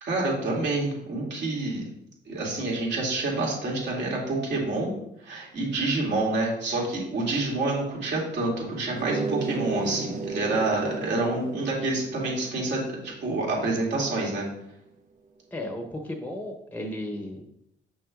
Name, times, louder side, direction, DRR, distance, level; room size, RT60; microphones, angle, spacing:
voice 1, 0.0-1.9 2.3-4.9 5.2-14.5, right 2 dB, 65° right, -3 dB, 2.4 m, -28 dB
voice 2, 5.6-6.0 15.5-17.4, left 1 dB, 10° left, 3 dB, 0.9 m, -35 dB
sound 1, 8.9-14.2, right 4 dB, 40° right, 0.6 m, -34 dB
6.9 x 6.0 x 2.4 m, 0.78 s
cardioid pair, 90°, 20 cm